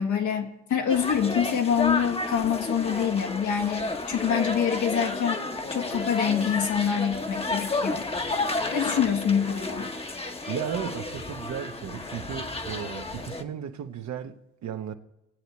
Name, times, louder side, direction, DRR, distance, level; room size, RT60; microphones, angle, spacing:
voice 1, 0.0-5.4 5.7-8.1 8.7-9.9, left 8 dB, 75° left, 1.7 m, -26 dB
sound 1, 0.9-13.4, left 2 dB, 20° left, 1.0 m, -31 dB
voice 2, 10.5-14.9, right 9 dB, 65° right, 1.1 m, -35 dB
19.5 x 8.2 x 4.3 m
cardioid pair, 90°, 30 cm